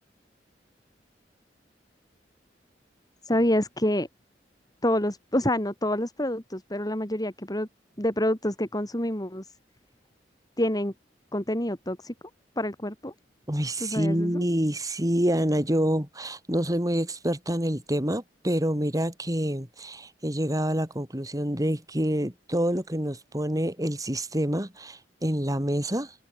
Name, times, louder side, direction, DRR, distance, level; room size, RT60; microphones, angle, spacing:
voice 1, 3.2-4.1 4.8-7.7 8.0-9.5 10.6-10.9 11.3-12.1 12.6-13.1 13.8-14.4, left 1 dB, 20° left, 7.1 m, -27 dB
voice 2, 13.5-26.1, equal, 20° right, 5.2 m, -27 dB
head